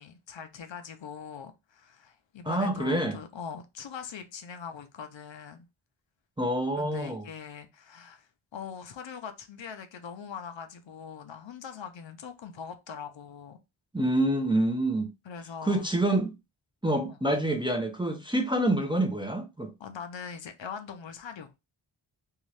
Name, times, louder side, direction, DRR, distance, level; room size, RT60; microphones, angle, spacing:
voice 1, 0.0-5.7 6.7-13.6 15.2-15.9 17.1-17.2 19.8-21.5, left 6 dB, 65° left, 0.6 m, -42 dB
voice 2, 2.4-3.2 6.4-7.3 13.9-15.1 15.6-16.3 16.8-19.7, right 1 dB, 10° right, 0.5 m, -27 dB
2.7 x 2.4 x 3.1 m
wide cardioid pair, 75°, 49 cm